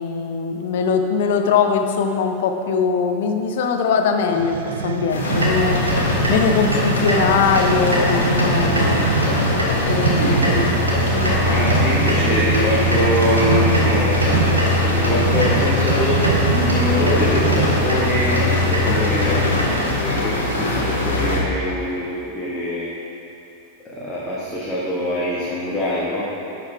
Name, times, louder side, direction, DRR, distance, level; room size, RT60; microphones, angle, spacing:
voice 1, 0.0-5.8 6.3-9.1 9.9-11.7, left 6 dB, 55° left, 4 dB, 0.6 m, -21 dB
sound 1, 4.3-18.0, right 7 dB, 60° right, 0.4 m, -25 dB
sound 2, 5.1-21.4, left 1 dB, 75° left, 1.3 m, -24 dB
sound 3, 5.3-19.6, left 1 dB, 75° right, 1.6 m, -22 dB
voice 2, 9.8-10.7 11.4-14.4 14.8-22.9 23.8-26.2, left 1 dB, 15° left, -7 dB, 1.3 m, -24 dB
10.5 x 4.0 x 4.6 m, 2.6 s
figure-of-eight pair, 90°, 0 cm